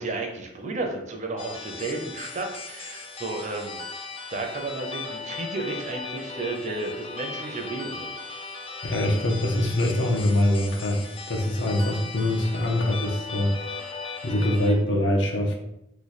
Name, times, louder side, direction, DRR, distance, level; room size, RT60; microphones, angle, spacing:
voice 1, 0.0-3.8 4.3-8.1, right 3 dB, 40° right, 2 dB, 0.5 m, -32 dB
sound 1, 1.4-14.7, left 4 dB, 30° left, 0.4 m, -37 dB
voice 2, 8.8-13.9 14.2-15.6, left 1 dB, 90° left, 1 dB, 0.7 m, -24 dB
3.1 x 2.2 x 4.0 m, 0.84 s
head